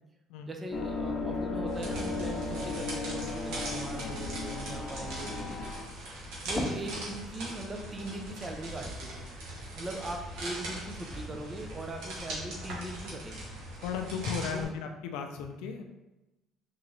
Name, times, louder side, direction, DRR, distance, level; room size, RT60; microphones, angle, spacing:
voice 1, 0.5-5.7 6.4-9.2 9.8-13.5 14.5-14.7, right 1 dB, 25° right, 3 dB, 0.7 m, -40 dB
sound 1, 0.7-5.8, left 3 dB, 45° left, 0.7 m, -35 dB
sound 2, 1.3-14.7, left 1 dB, 15° left, 0.7 m, -47 dB
sound 3, 1.7-14.6, right 1 dB, 80° right, 1.4 m, -41 dB
voice 2, 13.8-15.8, left 6 dB, 85° left, 5 dB, 0.5 m, -35 dB
3.7 x 3.7 x 3.3 m, 1.0 s
cardioid pair, 95°, 0 cm